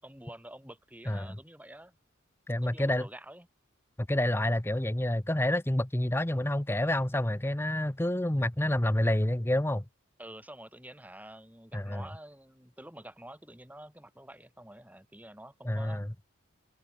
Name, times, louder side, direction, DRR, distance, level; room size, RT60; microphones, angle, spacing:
voice 1, 0.0-1.9 2.6-3.5 10.2-16.0, right 1 dB, 5° right, 5.9 m, -48 dB
voice 2, 1.1-1.4 2.5-3.1 4.0-9.8 11.7-12.0 15.6-16.1, left 1 dB, 10° left, 0.7 m, -28 dB
head